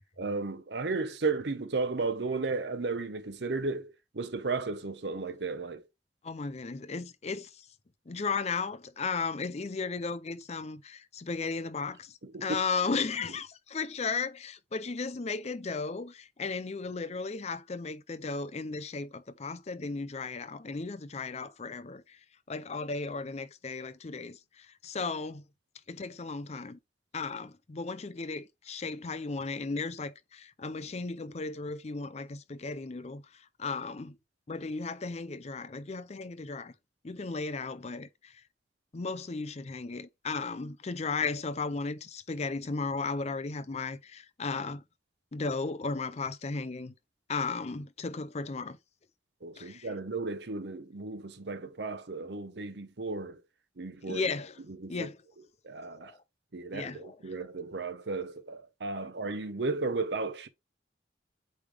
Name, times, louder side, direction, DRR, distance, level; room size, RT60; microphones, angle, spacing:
voice 1, 0.2-5.8 12.2-12.6 49.4-53.4 53.8-54.3 54.8-55.1 55.6-56.1 56.5-60.5, right 3 dB, 65° right, 0.8 m, -34 dB
voice 2, 6.2-7.7 8.1-22.2 22.5-25.4 25.9-26.8 27.1-34.2 34.5-36.7 37.0-38.4 38.9-44.8 45.3-46.9 47.3-48.8 49.6-49.9 54.1-54.6 54.9-55.2 56.0-56.2 56.7-57.2, left 4 dB, 35° left, 0.5 m, -35 dB
8.4 x 3.4 x 3.4 m
head